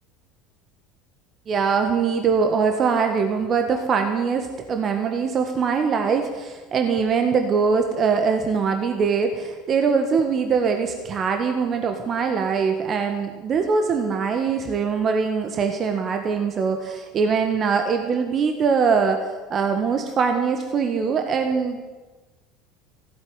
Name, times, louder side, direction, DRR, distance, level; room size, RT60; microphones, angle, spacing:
voice 1, 1.5-19.2 19.5-21.9, right 5 dB, 40° right, 5 dB, 1.6 m, -22 dB
15.5 x 8.1 x 9.7 m, 1.3 s
hypercardioid pair, 80°, 0 cm